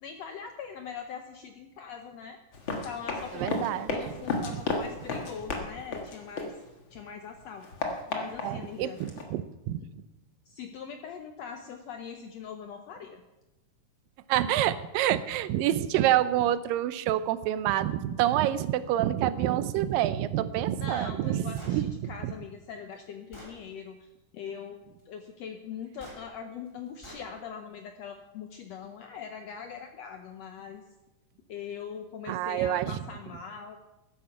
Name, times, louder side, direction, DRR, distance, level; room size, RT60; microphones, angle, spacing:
voice 1, 0.0-2.4 2.7-6.5 6.9-7.7 8.1-9.0 10.5-13.2 20.8-24.1 24.3-30.8 31.5-33.8, left 7 dB, 80° left, 5 dB, 1.5 m, -42 dB
Run, 2.5-7.0 7.3-9.2, left 3 dB, 45° left, 1.9 m, -34 dB
voice 2, 3.3-4.0 8.4-9.8 14.3-22.3 32.3-33.0, right 12 dB, 90° right, 13 dB, 2.4 m, -27 dB
Gunshot gunfire, 21.5-21.8 22.7-22.8 23.3-23.6 26.0-26.2 27.0-27.3, equal, 10° left, 2.8 m, -46 dB
13.5 x 10.5 x 5.7 m, 1.0 s
omnidirectional pair, 3.9 m